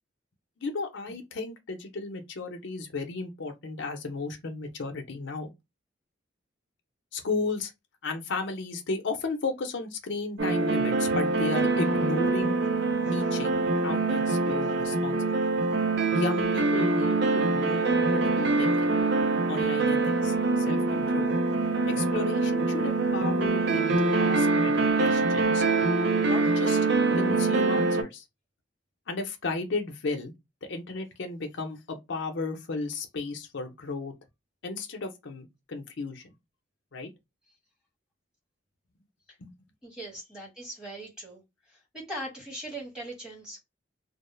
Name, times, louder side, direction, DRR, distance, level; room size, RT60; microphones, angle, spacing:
voice 1, 0.6-5.5 7.1-7.7 8.0-12.6 13.1-15.3 16.1-18.9 19.5-21.4 21.9-25.6 26.3-26.9 27.1-28.2 29.1-30.3 30.6-34.1 34.6-36.3 36.9-37.1 39.4-39.5, left 3 dB, 65° left, 0.6 m, -34 dB
sound 1, 10.4-28.0, right 3 dB, 60° right, 0.5 m, -24 dB
voice 2, 39.8-41.4 41.9-43.6, right 1 dB, 5° right, 1.3 m, -40 dB
2.2 x 2.0 x 3.0 m
head